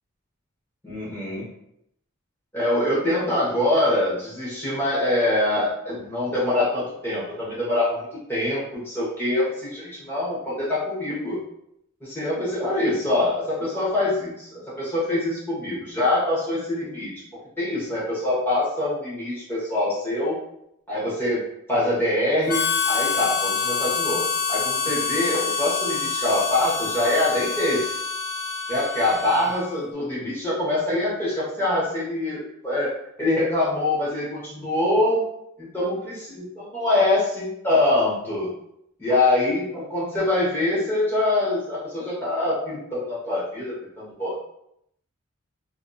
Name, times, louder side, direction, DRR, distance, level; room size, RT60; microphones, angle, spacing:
voice 1, 0.8-1.5 2.5-11.4 12.0-17.1 17.6-20.4 20.9-21.4 21.7-27.9 28.7-32.9 33.2-35.2 35.6-38.5 39.0-44.4, left 1 dB, 10° left, -8 dB, 0.8 m, -24 dB
Harmonica, 22.5-29.8, left 5 dB, 45° left, 0.4 m, -26 dB
2.7 x 2.5 x 2.2 m, 0.75 s
head